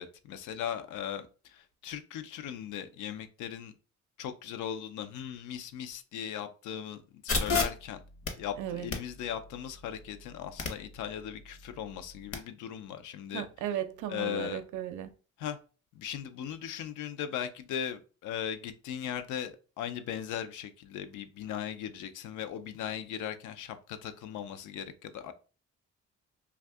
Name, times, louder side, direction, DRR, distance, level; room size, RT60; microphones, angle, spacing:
voice 1, 0.0-3.7 4.2-8.0 8.4-13.4 14.1-14.6 15.4-15.6 15.9-25.3, left 9 dB, 80° left, 0.5 m, -38 dB
sound 1, 7.3-12.4, left 4 dB, 45° left, 0.8 m, -36 dB
voice 2, 8.6-9.0 13.3-15.1, right 11 dB, 85° right, 0.5 m, -36 dB
2.6 x 2.3 x 3.4 m
cardioid pair, 90°, 30 cm